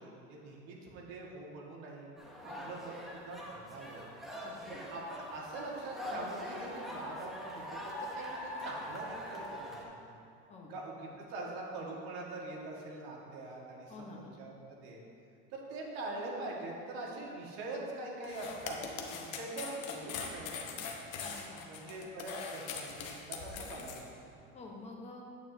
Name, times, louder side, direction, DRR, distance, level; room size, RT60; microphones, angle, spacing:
voice 1, 0.0-2.1 2.4-4.1 4.7-10.2 10.7-15.0 15.5-18.8 19.4-21.1 21.7-24.1, right 2 dB, 65° right, -3 dB, 1.8 m, -43 dB
sound 1, 2.2-9.8, left 1 dB, ahead, 0.8 m, -43 dB
voice 2, 4.4-4.8 10.5-10.7 13.9-14.2 19.1-19.3 21.2-21.6 24.5-25.2, left 3 dB, 20° left, -1 dB, 1.0 m, -49 dB
sound 2, 18.2-24.0, left 5 dB, 50° left, 0.9 m, -41 dB
9.1 x 8.6 x 2.8 m, 2.6 s
cardioid pair, 160°, 32 cm